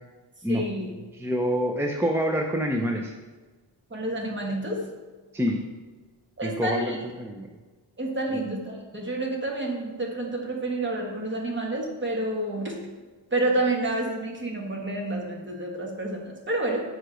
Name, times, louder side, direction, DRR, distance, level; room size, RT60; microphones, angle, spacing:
voice 1, 0.5-0.9 3.9-4.9 6.4-7.0 8.0-12.8 13.3-16.8, right 2 dB, 25° right, 0 dB, 1.3 m, -29 dB
voice 2, 1.2-3.1 5.3-5.6 6.4-7.5 8.4-8.5, equal, 5° right, 1 dB, 0.3 m, -26 dB
7.8 x 4.8 x 4.9 m, 1.3 s
wide cardioid pair, 165°, 44 cm